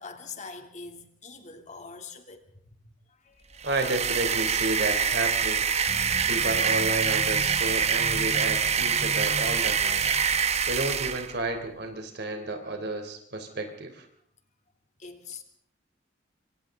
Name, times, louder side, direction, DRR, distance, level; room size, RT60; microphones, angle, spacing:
voice 1, 0.0-3.6 15.0-15.4, left 4 dB, 40° left, 5 dB, 3.1 m, -44 dB
sound 1, 3.6-11.3, right 7 dB, 35° right, 1.1 m, -25 dB
voice 2, 3.6-5.6 6.3-10.1 10.7-14.1, right 2 dB, 60° right, 5 dB, 3.5 m, -31 dB
sound 2, 5.9-10.4, equal, 5° left, 3.0 m, -40 dB
26.5 x 25.5 x 3.9 m, 0.64 s
head